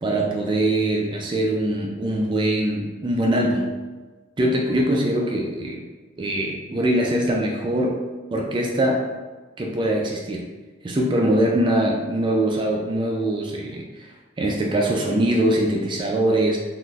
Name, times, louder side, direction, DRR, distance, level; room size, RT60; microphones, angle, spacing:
voice 1, 0.0-3.7 4.4-5.8 6.2-8.1 8.3-9.1 9.6-10.5 10.8-14.1 14.4-16.6, right 1 dB, 25° right, 0 dB, 0.3 m, -22 dB
3.7 x 2.5 x 2.3 m, 1.3 s
head